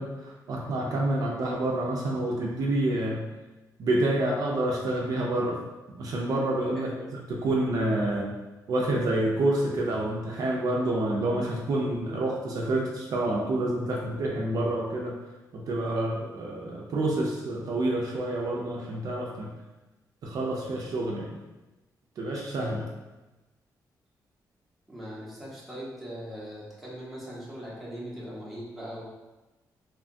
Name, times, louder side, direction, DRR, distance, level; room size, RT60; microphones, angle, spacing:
voice 1, 0.0-3.2 3.8-5.6 5.9-6.9 7.4-8.2 8.7-15.1 15.5-19.5 20.2-21.4 22.2-22.9, right 1 dB, 60° right, -2 dB, 0.4 m, -28 dB
voice 2, 6.7-7.2 24.9-29.0, equal, ahead, -7 dB, 0.7 m, -40 dB
2.8 x 2.2 x 2.5 m, 1.1 s
wide cardioid pair, 155°, 7 cm